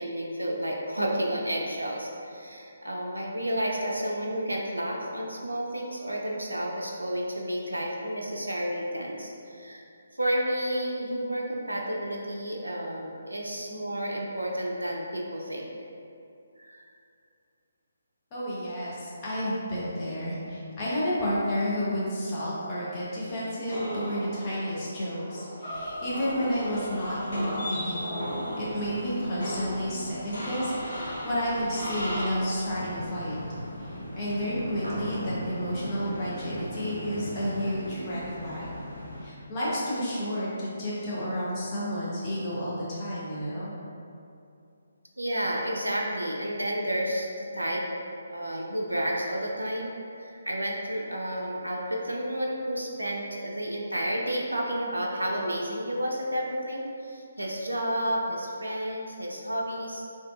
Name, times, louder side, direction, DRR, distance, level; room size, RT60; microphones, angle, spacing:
voice 1, 0.0-9.8 10.1-15.7 16.6-16.9 45.2-47.3 47.5-47.9 48.3-60.0, equal, 85° right, -2 dB, 0.4 m, -31 dB
voice 2, 18.3-28.2 28.6-33.4 33.8-33.9 34.2-38.8 39.2-43.7, equal, 25° left, -9 dB, 0.8 m, -31 dB
sound 1, 23.7-32.3, equal, 55° left, 1.1 m, -36 dB
sound 2, 25.7-39.3, equal, 85° left, 0.8 m, -40 dB
3.5 x 2.6 x 2.4 m, 2.6 s
figure-of-eight pair, 140°, 0 cm